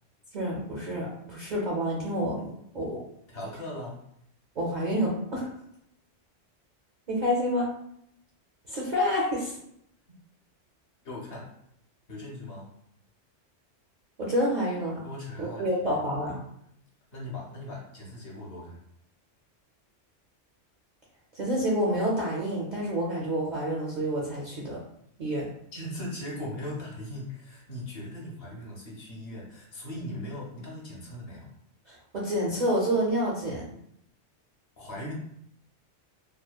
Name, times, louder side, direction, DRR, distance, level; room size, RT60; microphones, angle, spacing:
voice 1, 0.3-3.0 4.6-5.5 7.1-7.7 8.7-9.6 14.2-15.0 15.4-16.4 21.3-24.8 25.2-25.5 31.9-33.7, equal, 55° right, -5 dB, 0.5 m, -28 dB
voice 2, 3.3-4.0 11.0-11.5 12.1-12.7 15.0-16.0 17.1-18.8 25.7-31.5 34.8-35.1, left 1 dB, 60° left, -3 dB, 0.9 m, -39 dB
2.7 x 2.1 x 2.3 m, 0.73 s
omnidirectional pair, 1.3 m